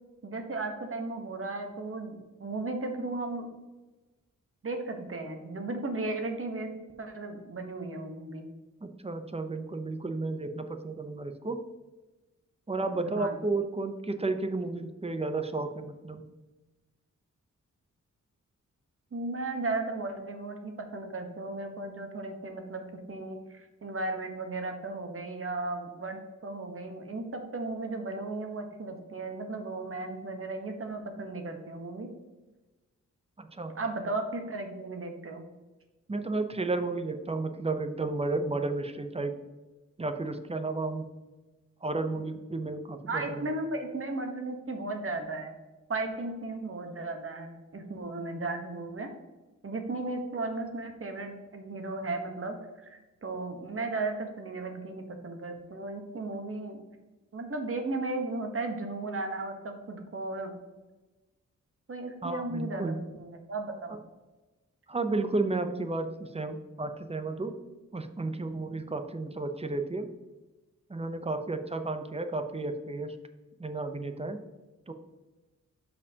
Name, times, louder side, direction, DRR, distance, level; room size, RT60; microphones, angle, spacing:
voice 1, 0.2-3.5 4.6-6.7 7.0-8.5 12.9-13.4 19.1-32.1 33.7-35.4 43.1-45.5 45.9-49.1 49.6-56.8 57.3-60.5 61.9-64.0, right 2 dB, 45° right, 4 dB, 1.1 m, -35 dB
voice 2, 8.8-11.6 12.7-16.2 33.4-33.7 36.1-39.3 40.0-41.1 41.8-43.5 62.2-63.0 64.9-67.6 67.9-70.1 70.9-73.2 73.6-74.4 74.9-75.0, right 3 dB, 20° right, 7 dB, 0.6 m, -32 dB
12.5 x 4.4 x 2.8 m, 1.2 s
wide cardioid pair, 100°, 31 cm